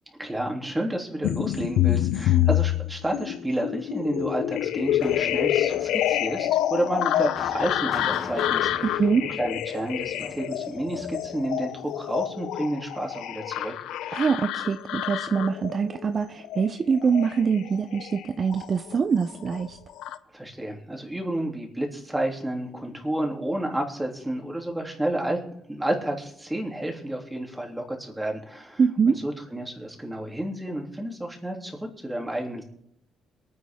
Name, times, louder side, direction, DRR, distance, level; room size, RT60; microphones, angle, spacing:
voice 1, 0.2-13.7 20.3-25.4 25.7-28.8 29.1-32.6, right 1 dB, 10° right, 1 dB, 3.0 m, -30 dB
sound 1, 1.2-19.0 19.3-20.2, left 12 dB, 90° left, 0.6 m, -27 dB
sound 2, 4.2-12.3, left 1 dB, 20° left, 3.2 m, -43 dB
voice 2, 8.8-9.3 14.1-19.8 28.8-29.2, right 6 dB, 45° right, 10 dB, 0.6 m, -24 dB
23.0 x 9.7 x 3.7 m, 0.74 s
cardioid pair, 90°, 0 cm